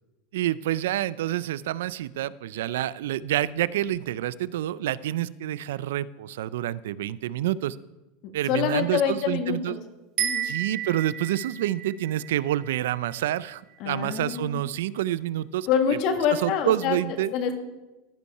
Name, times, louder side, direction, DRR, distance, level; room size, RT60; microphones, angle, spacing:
voice 1, 0.3-7.8 8.3-9.8 10.4-15.7 16.4-17.3, right 13 dB, 85° right, 19 dB, 0.3 m, -28 dB
voice 2, 8.2-9.8 10.2-10.5 13.8-14.6 15.7-17.0 17.3-17.5, left 7 dB, 55° left, 5 dB, 1.6 m, -26 dB
sound 1, 10.2-13.6, right 9 dB, 45° right, 2.3 m, -32 dB
14.5 x 5.5 x 5.5 m, 1.1 s
supercardioid pair, 140°, 0 cm